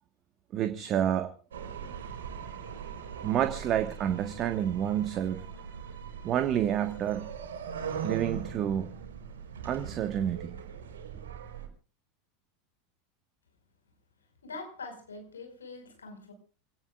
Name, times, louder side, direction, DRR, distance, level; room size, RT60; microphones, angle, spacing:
voice 1, 0.5-1.3 3.2-5.4 6.2-7.3 8.0-8.9 9.6-10.6, right 10 dB, 35° right, 1.5 m, -29 dB
sound 1, 1.5-11.7, right 7 dB, 70° right, 4.2 m, -40 dB
voice 2, 14.4-16.3, left 3 dB, 75° left, 5.4 m, -43 dB
27.5 x 18.0 x 2.5 m
figure-of-eight pair, 80°, 0 cm